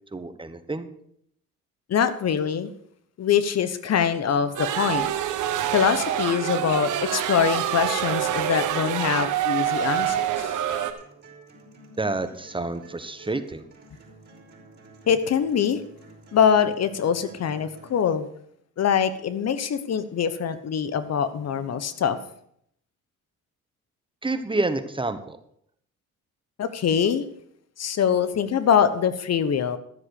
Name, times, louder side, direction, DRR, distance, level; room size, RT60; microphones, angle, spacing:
voice 1, 0.1-0.9 12.0-13.7 24.2-25.4, right 2 dB, 15° right, 10 dB, 1.2 m, -28 dB
voice 2, 1.9-2.7 3.2-5.1 5.7-10.5 15.1-15.8 16.3-18.3 18.8-22.2 26.6-27.2 27.8-29.8, left 7 dB, 55° left, 12 dB, 1.1 m, -23 dB
sound 1, 4.5-10.9, right 11 dB, 85° right, 1.2 m, -26 dB
sound 2, 10.0-18.0, right 3 dB, 35° right, 5.1 m, -50 dB
13.5 x 7.4 x 6.6 m, 0.69 s
cardioid pair, 90°, 30 cm